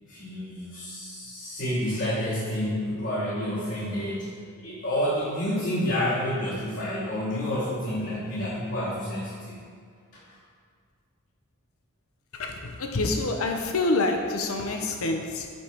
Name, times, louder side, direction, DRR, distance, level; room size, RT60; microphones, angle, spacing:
voice 1, 0.0-9.6 10.3-10.4, left 1 dB, 55° left, -8 dB, 1.1 m, -29 dB
voice 2, 12.3-15.6, left 2 dB, 75° left, 4 dB, 0.6 m, -27 dB
5.3 x 4.9 x 4.4 m, 2.1 s
head